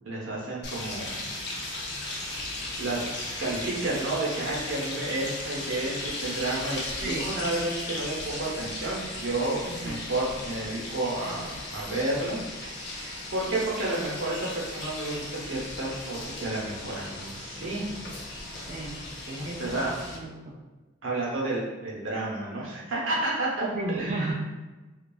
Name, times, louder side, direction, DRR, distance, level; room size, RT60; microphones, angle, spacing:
voice 1, 0.0-1.3 2.8-12.4 13.0-17.9 19.2-20.0 21.0-23.7 24.0-24.2, right 2 dB, 70° right, -4 dB, 0.8 m, -31 dB
sound 1, 0.6-20.2, left 2 dB, 55° left, 0.5 m, -37 dB
voice 2, 9.7-10.0 18.6-19.0 19.4-20.6 23.7-24.3, right 2 dB, 35° right, -6 dB, 0.3 m, -34 dB
3.0 x 2.3 x 2.3 m, 1.2 s
head